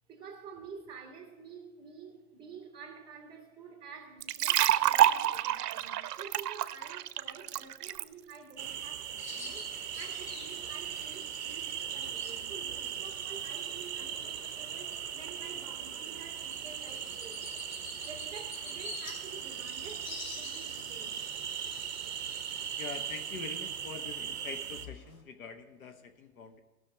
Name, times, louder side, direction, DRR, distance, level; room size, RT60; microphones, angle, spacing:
voice 1, 0.1-17.5 18.0-21.2, right 5 dB, 10° right, 2 dB, 1.7 m, -49 dB
sound 1, 4.2-8.0, right 12 dB, 75° right, 0.6 m, -28 dB
sound 2, 8.6-24.9, right 9 dB, 45° right, 0.8 m, -39 dB
Bird vocalization bird call bird song, 9.2-25.2, left 3 dB, 85° left, 3.2 m, -49 dB
voice 2, 22.8-26.6, left 5 dB, 60° left, 8 dB, 1.3 m, -44 dB
16.5 x 6.3 x 6.0 m, 1.2 s
hypercardioid pair, 155°, 47 cm